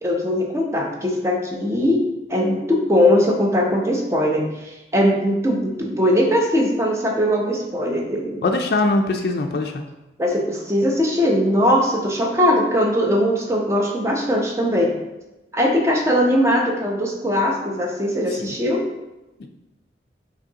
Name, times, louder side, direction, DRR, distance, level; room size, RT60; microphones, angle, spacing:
voice 1, 0.0-2.0 2.3-8.4 10.2-15.0 15.5-18.8, equal, 15° right, 0 dB, 0.6 m, -20 dB
voice 2, 8.4-9.7 18.4-18.5 19.4-19.5, left 2 dB, 60° left, 4 dB, 0.3 m, -21 dB
5.0 x 3.0 x 2.7 m, 1.0 s
head